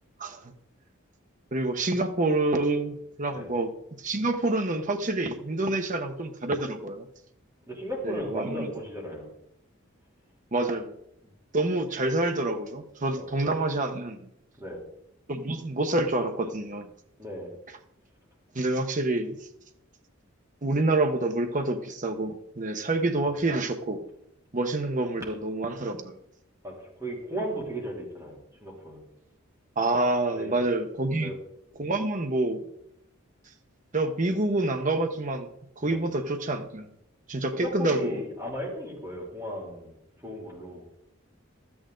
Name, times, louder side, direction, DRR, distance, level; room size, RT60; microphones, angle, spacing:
voice 1, 1.5-3.7 4.0-7.1 8.0-8.7 10.5-10.9 11.5-14.3 15.3-16.9 18.5-19.4 20.6-24.0 24.5-26.2 29.8-31.3 31.8-32.6 33.9-35.5 35.8-36.9 37.3-38.2, right 2 dB, 40° right, 6 dB, 1.0 m, -27 dB
voice 2, 7.7-9.3 11.2-11.3 13.2-13.3 14.6-14.8 17.2-17.5 23.2-23.4 25.2-25.3 26.6-28.4 28.6-29.0 30.3-30.6 31.2-31.3 35.8-36.0 37.5-39.9 40.2-40.9, equal, 15° right, -3 dB, 2.8 m, -35 dB
13.0 x 8.8 x 3.9 m, 0.77 s
head